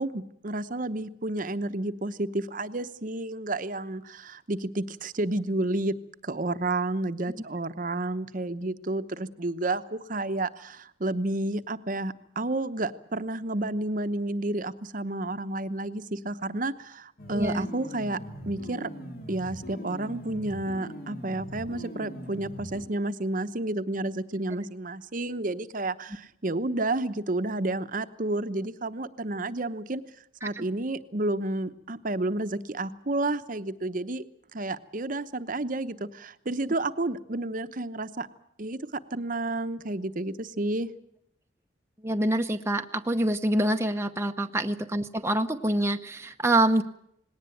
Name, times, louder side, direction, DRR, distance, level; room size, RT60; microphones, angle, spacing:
voice 1, 0.0-5.9 6.2-18.2 18.5-18.9 19.3-30.0 30.4-34.2 34.5-38.3 38.6-38.8 39.1-40.9, right 2 dB, 45° right, 11 dB, 0.9 m, -31 dB
sound 1, 17.2-22.8, right 1 dB, 50° left, 3.1 m, -41 dB
voice 2, 17.3-17.7 30.4-30.6 42.0-46.8, right 1 dB, 15° right, 5 dB, 0.8 m, -26 dB
19.5 x 18.0 x 9.2 m, 0.74 s
head